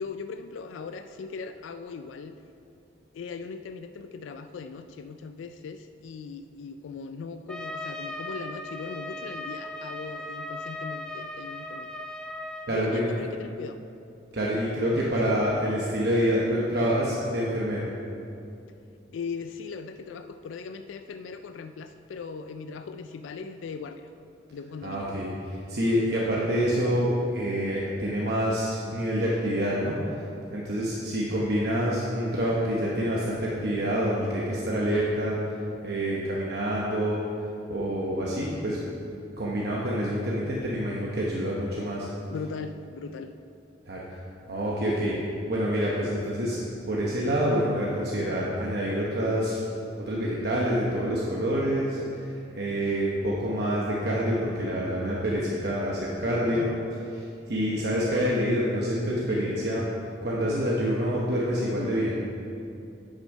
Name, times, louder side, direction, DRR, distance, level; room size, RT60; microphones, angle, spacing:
voice 1, 0.0-2.3 3.1-11.9 12.7-13.8 14.5-14.7 15.0-15.1 19.1-24.1 24.5-25.1 42.3-43.3 56.5-56.8, left 5 dB, 85° left, 9 dB, 0.3 m, -39 dB
Trumpet, 7.5-12.8, left 1 dB, 5° left, 0.4 m, -37 dB
voice 2, 12.7-13.1 14.3-17.9 24.8-30.2 30.5-35.6 35.8-37.2 37.7-38.8 39.4-42.1 43.9-44.2 44.5-45.2 45.5-46.6 46.9-49.6 50.0-52.3 52.5-56.7 57.1-59.8 60.2-62.1, equal, 55° right, -5 dB, 1.0 m, -27 dB
8.4 x 6.3 x 5.3 m, 2.7 s
head